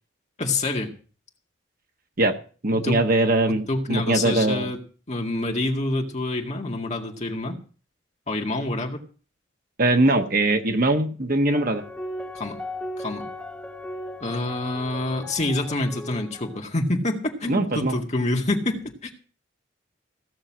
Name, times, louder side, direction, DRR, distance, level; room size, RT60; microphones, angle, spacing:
voice 1, 0.4-0.9 2.8-3.0 3.5-4.8 5.1-7.6 8.3-9.0 12.3-12.6 13.0-13.3 14.2-19.1, left 2 dB, 35° left, 2 dB, 2.1 m, -27 dB
voice 2, 2.6-4.7 9.8-11.8 17.5-17.9, right 2 dB, 45° right, 6 dB, 1.3 m, -21 dB
sound 1, 11.5-16.6, left 1 dB, 5° left, 1.6 m, -37 dB
16.0 x 6.6 x 7.5 m, 0.39 s
head